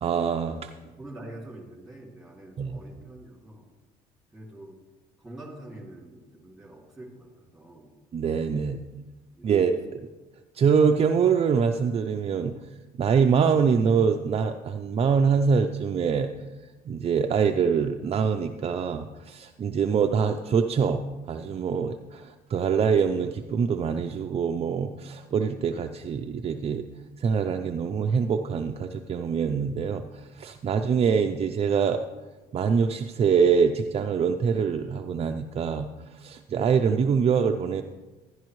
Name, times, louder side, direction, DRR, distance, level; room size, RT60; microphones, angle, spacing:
voice 1, 0.0-0.7 2.6-2.8 8.1-8.8 9.4-9.7 10.5-12.6 12.9-16.3 16.9-21.0 21.3-26.9 27.2-32.0 32.5-35.9 36.2-37.8, right 6 dB, 35° right, 5 dB, 0.5 m, -24 dB
voice 2, 1.0-3.7 4.3-4.8 5.2-7.9 8.6-9.0 9.3-10.0, right 1 dB, ahead, -1 dB, 2.4 m, -45 dB
11.5 x 11.0 x 3.1 m, 1.2 s
cardioid pair, 110°, 17 cm